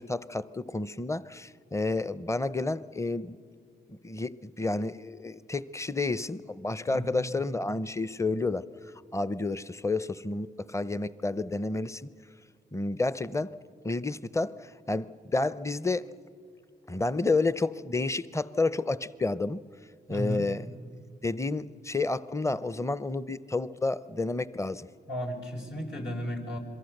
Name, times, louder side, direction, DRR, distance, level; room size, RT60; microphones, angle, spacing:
voice 1, 0.0-3.4 3.9-8.6 9.1-12.1 12.7-13.5 13.8-16.1 16.9-19.6 20.1-20.7 21.2-24.9, left 3 dB, 15° left, 16 dB, 0.7 m, -30 dB
voice 2, 6.9-7.2 20.1-20.4 25.1-26.6, equal, 70° left, 0 dB, 4.9 m, -34 dB
26.5 x 23.0 x 6.7 m, 2.2 s
cardioid pair, 50°, 20 cm